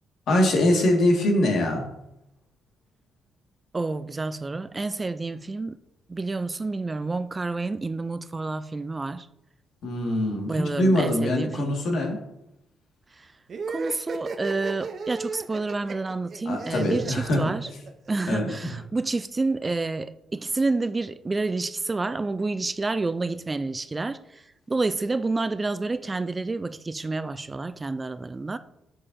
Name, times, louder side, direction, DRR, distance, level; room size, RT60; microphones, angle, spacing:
voice 1, 0.3-1.9 9.8-12.2 16.5-17.6 18.3-18.7, left 1 dB, 65° left, 1.7 m, -23 dB
voice 2, 3.7-5.8 6.1-9.3 10.5-11.8 13.1-13.3 13.7-17.7 18.1-28.6, right 3 dB, 25° right, 0.3 m, -29 dB
sound 1, 13.5-18.1, right 4 dB, 50° right, 0.7 m, -35 dB
7.6 x 6.5 x 2.6 m
cardioid pair, 90°, 0 cm